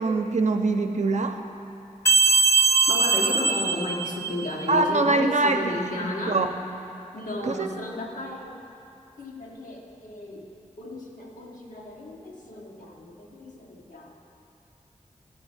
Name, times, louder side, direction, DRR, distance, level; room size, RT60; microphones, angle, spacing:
voice 1, 0.0-1.4 4.7-5.6 6.3-6.5 7.4-7.7, right 3 dB, 60° right, 5 dB, 0.6 m, -23 dB
sound 1, 2.1-4.6, right 4 dB, 20° left, 0.5 m, -21 dB
voice 2, 2.9-6.4 7.1-8.6 9.2-14.1, left 1 dB, 80° left, -2 dB, 1.3 m, -34 dB
12.0 x 4.2 x 8.0 m, 2.7 s
wide cardioid pair, 65°, 13 cm